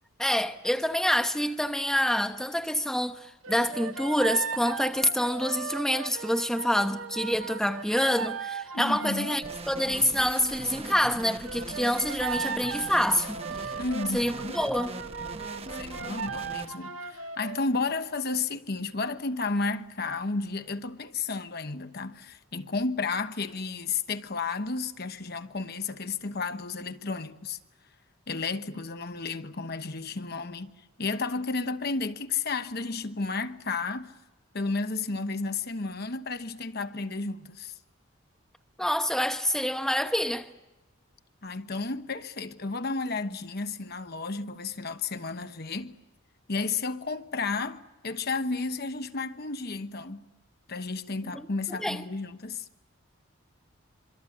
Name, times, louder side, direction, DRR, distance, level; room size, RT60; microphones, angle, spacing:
voice 1, 0.2-13.8 14.1-15.0 38.8-40.5 51.3-51.4 51.7-52.0, equal, ahead, 0.9 m, -27 dB
sound 1, 3.4-9.6 11.4-17.6, right 5 dB, 75° right, 2.0 m, -37 dB
voice 2, 8.7-9.4 13.8-14.6 15.7-27.6 28.3-34.1 34.5-37.7 41.4-46.0 46.5-50.3 50.7-52.6, left 3 dB, 50° left, 1.1 m, -32 dB
sound 2, 9.4-16.7, right 2 dB, 30° right, 1.2 m, -40 dB
26.5 x 24.5 x 8.7 m
head